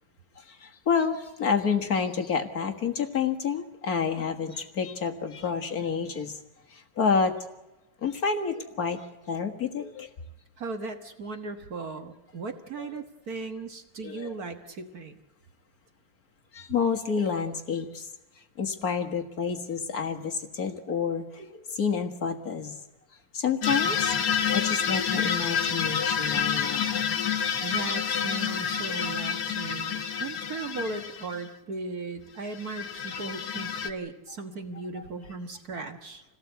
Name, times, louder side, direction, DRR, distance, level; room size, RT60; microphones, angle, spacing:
voice 1, 0.6-6.3 7.0-7.3 8.0-9.0 9.3-10.1 12.8-12.9 14.0-14.4 16.5-18.1 18.6-22.7 23.3-24.1 24.5-27.0 30.5-30.6, left 6 dB, 40° left, 4 dB, 1.3 m, -29 dB
voice 2, 10.6-15.2 27.6-36.2, right 3 dB, 55° right, 7 dB, 1.0 m, -37 dB
sound 1, 23.6-31.4 32.5-33.9, left 7 dB, 70° left, 0.9 m, -28 dB
27.5 x 18.0 x 8.1 m, 1.0 s
omnidirectional pair, 3.8 m